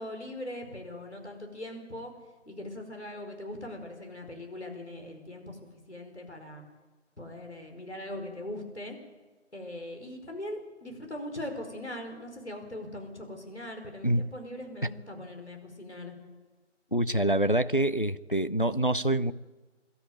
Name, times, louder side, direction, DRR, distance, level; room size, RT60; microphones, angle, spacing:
voice 1, 0.0-2.1 2.4-6.6 7.2-9.0 9.5-16.1, left 1 dB, 60° left, 3 dB, 5.0 m, -40 dB
voice 2, 16.9-19.3, right 1 dB, 45° left, 14 dB, 0.6 m, -26 dB
22.5 x 13.0 x 9.3 m, 1.2 s
figure-of-eight pair, 175°, 38 cm